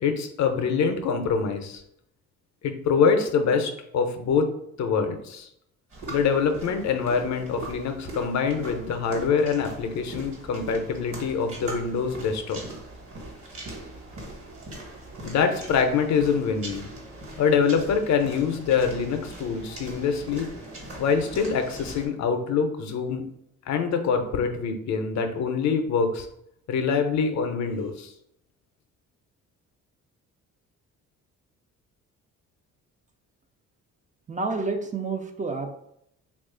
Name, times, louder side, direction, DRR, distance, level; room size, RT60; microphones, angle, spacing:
voice 1, 0.0-1.8 2.6-4.5 4.8-5.5 6.1-12.6 15.2-16.9 17.4-20.5 21.0-23.2 23.7-26.3 26.7-28.1, left 6 dB, 65° left, 6 dB, 0.6 m, -25 dB
sound 1, 5.9-22.1, right 2 dB, 50° right, 1.3 m, -41 dB
voice 2, 34.3-35.7, right 3 dB, 25° right, 5 dB, 0.4 m, -29 dB
3.0 x 2.4 x 3.7 m, 0.74 s
cardioid pair, 90°, 30 cm